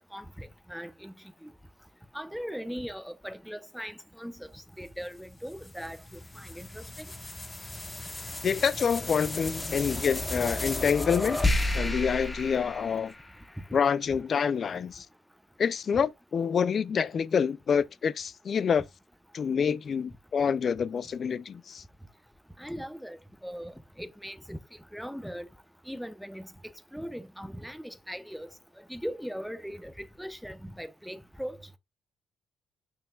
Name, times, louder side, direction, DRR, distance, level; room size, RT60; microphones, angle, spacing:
voice 1, 0.1-1.1 1.4-1.5 2.1-6.0 6.4-7.1 22.6-23.7 24.0-24.6 24.9-25.5 25.9-26.5 26.9-28.5 28.9-31.6, equal, ahead, 0.9 m, -39 dB
sound 1, 5.0-13.6, left 1 dB, 15° left, 1.2 m, -33 dB
voice 2, 8.4-11.4 11.7-13.1 13.7-15.0 15.6-18.9 19.3-21.8, left 6 dB, 50° left, 0.5 m, -27 dB
6.9 x 5.9 x 2.4 m
cardioid pair, 90°, 0 cm